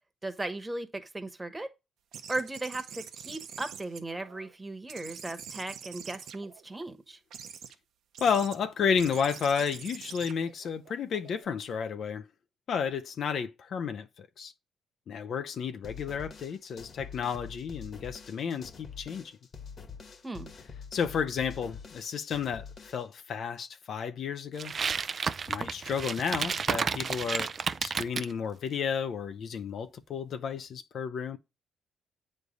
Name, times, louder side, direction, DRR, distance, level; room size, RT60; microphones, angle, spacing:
voice 1, 0.2-1.7 2.3-7.2 20.2-20.5, right 2 dB, 15° right, 1.2 m, -37 dB
sound 1, 2.1-4.5 4.9-6.8 7.3-7.8 8.1-8.6 9.0-11.5, right 8 dB, 75° right, 0.8 m, -46 dB
voice 2, 8.2-12.2 12.7-14.5 15.1-19.4 20.9-24.7 25.5-27.5 27.8-31.4, left 6 dB, 60° left, 0.6 m, -32 dB
sound 2, 15.8-23.2, left 6 dB, 45° left, 1.3 m, -46 dB
sound 3, 24.6-28.3, right 5 dB, 45° right, 0.4 m, -31 dB
8.2 x 3.3 x 5.2 m
cardioid pair, 90°, 0 cm